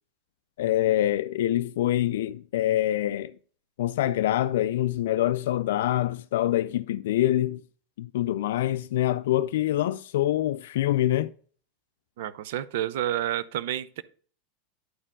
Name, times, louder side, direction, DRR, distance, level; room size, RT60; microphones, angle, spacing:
voice 1, 0.6-3.3 3.8-7.6 8.0-11.3, left 13 dB, 75° left, 0.3 m, -25 dB
voice 2, 12.2-14.0, right 12 dB, 70° right, 0.6 m, -29 dB
11.0 x 4.4 x 3.7 m
hypercardioid pair, 105°, 0 cm